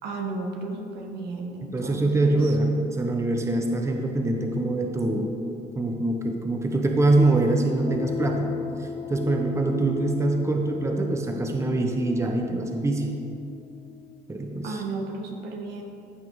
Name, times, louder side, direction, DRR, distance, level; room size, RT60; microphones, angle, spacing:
voice 1, 0.0-2.6 14.6-15.8, right 3 dB, 80° right, 2 dB, 1.5 m, -34 dB
voice 2, 1.7-5.3 5.8-8.5 8.8-13.1 14.3-14.8, right 2 dB, 15° right, 2 dB, 1.0 m, -24 dB
sound 1, 7.9-14.4, left 5 dB, 25° left, 0.4 m, -36 dB
14.5 x 5.8 x 4.8 m, 2.5 s
cardioid pair, 110°, 17 cm